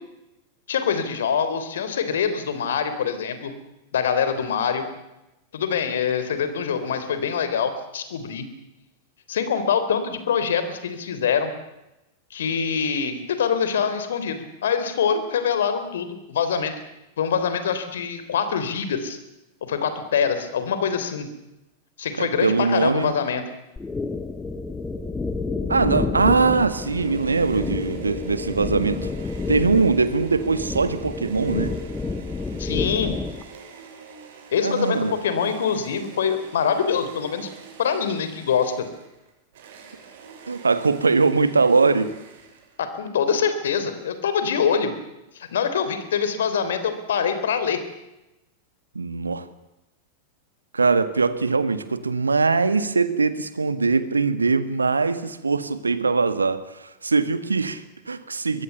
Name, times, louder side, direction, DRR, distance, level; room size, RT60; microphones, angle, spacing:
voice 1, 0.7-3.5 3.9-4.8 5.5-8.5 9.3-11.5 12.3-16.7 17.2-19.2 19.6-21.3 22.0-23.4 32.6-33.1 34.5-37.5 37.8-38.9 42.8-44.9 45.4-47.8, left 7 dB, 60° left, 10 dB, 3.6 m, -24 dB
voice 2, 22.2-23.1 25.7-29.1 29.5-31.7 34.6-35.1 40.5-42.1 48.9-49.5 50.7-58.6, right 4 dB, 75° right, 13 dB, 1.7 m, -21 dB
sound 1, 23.8-33.4, left 3 dB, 10° left, 1.5 m, -29 dB
sound 2, 26.7-43.0, right 5 dB, 55° right, 6.1 m, -46 dB
23.5 x 22.5 x 7.0 m, 0.95 s
figure-of-eight pair, 90°, 0 cm